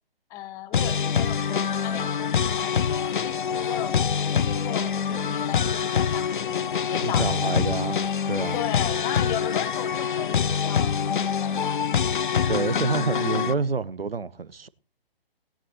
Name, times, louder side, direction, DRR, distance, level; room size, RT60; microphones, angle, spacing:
voice 1, 0.3-4.0 4.3-7.4 8.5-12.2, left 11 dB, 10° left, 0.8 m, -36 dB
sound 1, 0.7-13.5, left 7 dB, 55° left, 0.6 m, -25 dB
voice 2, 7.0-8.0 8.3-8.6 12.5-14.7, right 4 dB, 75° right, 1.0 m, -27 dB
18.0 x 17.0 x 3.0 m
figure-of-eight pair, 135°, 30 cm